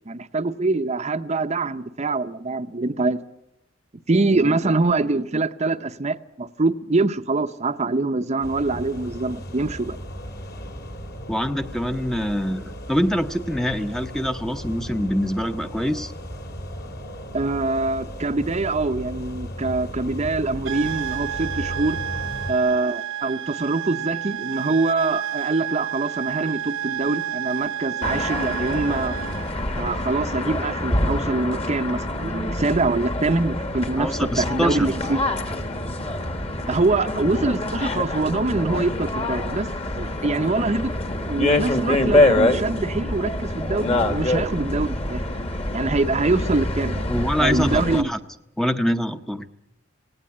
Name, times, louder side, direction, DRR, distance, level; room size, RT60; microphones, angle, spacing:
voice 1, 0.1-3.2 4.1-10.0 17.3-22.0 22.5-29.2 29.8-35.2 36.7-40.9 41.3-45.2 45.7-47.1 47.4-48.1, right 3 dB, 35° right, 9 dB, 0.7 m, -24 dB
voice 2, 4.3-4.7 11.3-16.1 34.0-34.9 47.1-48.2 48.6-49.5, equal, ahead, 8 dB, 0.8 m, -25 dB
sound 1, 8.4-22.5, equal, 55° left, 3.0 m, -36 dB
sound 2, 20.6-29.6, right 10 dB, 75° right, 0.8 m, -30 dB
sound 3, 28.0-48.0, left 1 dB, 35° left, 1.7 m, -25 dB
18.5 x 18.0 x 8.7 m, 0.84 s
head